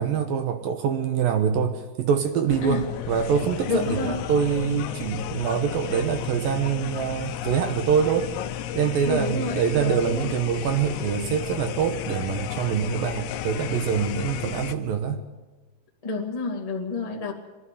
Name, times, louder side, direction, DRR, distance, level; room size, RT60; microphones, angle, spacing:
voice 1, 0.0-8.3 8.7-15.2, right 7 dB, 70° right, 7 dB, 2.3 m, -25 dB
sound 1, 2.5-14.8, left 10 dB, 75° left, 2.8 m, -33 dB
voice 2, 3.7-4.2 9.0-10.3 16.0-17.3, left 3 dB, 20° left, 1 dB, 0.9 m, -29 dB
23.5 x 13.0 x 9.3 m, 1.2 s
omnidirectional pair, 5.3 m